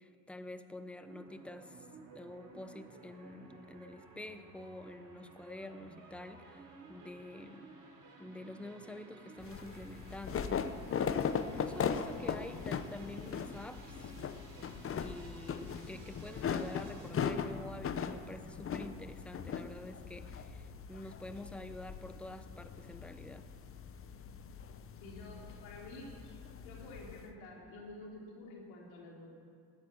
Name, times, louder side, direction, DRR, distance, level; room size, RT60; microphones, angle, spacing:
voice 1, 0.0-7.7 8.2-10.8 11.4-14.1 15.0-23.5, left 1 dB, 5° left, 10 dB, 0.9 m, -48 dB
sound 1, 1.0-17.1, right 3 dB, 55° right, 4.2 m, -55 dB
sound 2, 9.4-27.3, left 7 dB, 35° left, 0.9 m, -39 dB
voice 2, 24.9-26.4 26.6-29.3, left 2 dB, 80° left, -2 dB, 3.4 m, -50 dB
14.0 x 9.7 x 7.2 m, 2.4 s
supercardioid pair, 75°, 37 cm